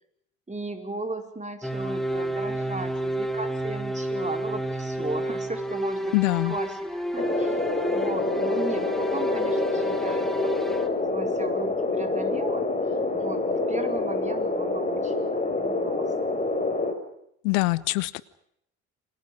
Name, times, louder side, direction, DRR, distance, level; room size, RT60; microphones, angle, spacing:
voice 1, 0.5-6.1 6.4-7.6 7.9-10.3 11.0-12.7 13.1-16.1, right 2 dB, 15° right, 6 dB, 4.8 m, -36 dB
sound 1, 1.6-10.9, right 1 dB, ahead, 3.3 m, -30 dB
voice 2, 6.1-6.5 17.4-18.2, left 24 dB, 70° left, 18 dB, 1.1 m, -23 dB
sound 2, 7.2-16.9, left 3 dB, 15° left, 6.4 m, -27 dB
29.0 x 26.0 x 5.2 m, 0.74 s
figure-of-eight pair, 55°, 43 cm